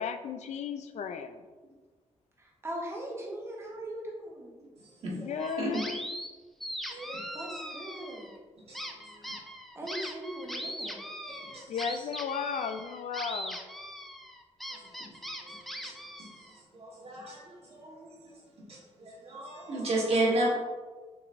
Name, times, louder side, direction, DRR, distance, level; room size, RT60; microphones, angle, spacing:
voice 1, 0.0-1.4 5.2-6.0 11.7-13.6, left 6 dB, 75° left, 8 dB, 0.4 m, -34 dB
voice 2, 2.4-4.5 6.9-7.0 7.3-8.3 9.2-11.0, right 1 dB, 20° right, -2 dB, 1.0 m, -40 dB
voice 3, 5.0-5.8 6.9-7.2 17.0-17.4 19.3-20.5, right 2 dB, 60° right, -4 dB, 1.3 m, -29 dB
sound 1, 5.4-6.3 6.6-8.4 8.7-16.6, equal, ahead, 0.4 m, -40 dB
5.9 x 3.1 x 2.5 m, 1.4 s
wide cardioid pair, 110°, 12 cm